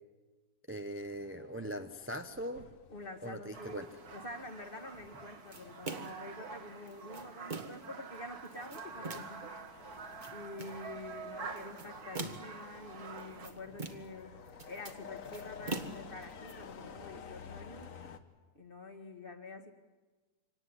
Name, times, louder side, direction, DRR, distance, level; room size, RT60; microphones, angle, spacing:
voice 1, 0.7-2.7 3.2-3.9, equal, 15° right, 7 dB, 0.6 m, -40 dB
sound 1, 1.0-18.2, left 6 dB, 55° left, 1.5 m, -53 dB
voice 2, 2.9-9.7 10.3-14.4 14.7-17.9 18.5-19.7, left 2 dB, 35° left, 6 dB, 2.0 m, -47 dB
sound 2, 3.5-13.5, right 5 dB, 65° right, 2.1 m, -47 dB
sound 3, 5.5-6.3 6.9-7.9 8.4-9.4 10.0-10.8 11.6-12.6 13.2-14.2 14.5-16.5, right 3 dB, 30° right, 1.4 m, -43 dB
25.5 x 18.0 x 9.9 m, 1.3 s
omnidirectional pair, 1.7 m